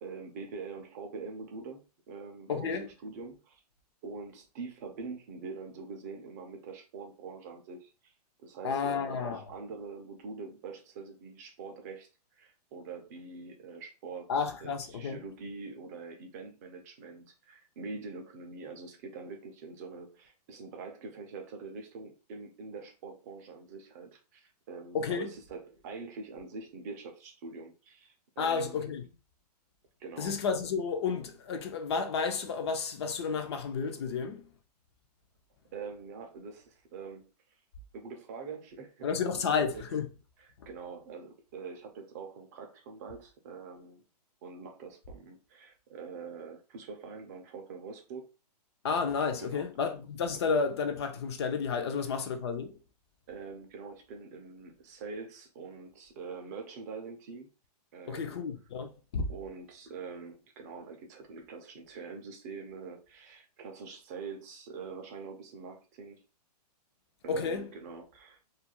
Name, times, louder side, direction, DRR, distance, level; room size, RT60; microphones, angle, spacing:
voice 1, 0.0-3.6 4.0-8.1 8.4-12.1 12.4-28.9 30.0-30.4 35.7-37.3 37.9-39.5 39.7-39.8 40.4-44.0 44.4-48.3 49.4-49.7 53.3-57.5 57.9-58.4 59.3-66.2 67.2-68.4, right 4 dB, 25° right, 0.4 m, -44 dB
voice 2, 2.5-2.9 8.6-9.4 14.3-15.2 24.9-25.3 28.4-29.0 30.2-34.5 39.0-40.1 48.8-52.7 58.1-59.3 67.3-67.7, left 5 dB, 40° left, 0.4 m, -31 dB
2.3 x 2.2 x 2.8 m
hypercardioid pair, 155°, 21 cm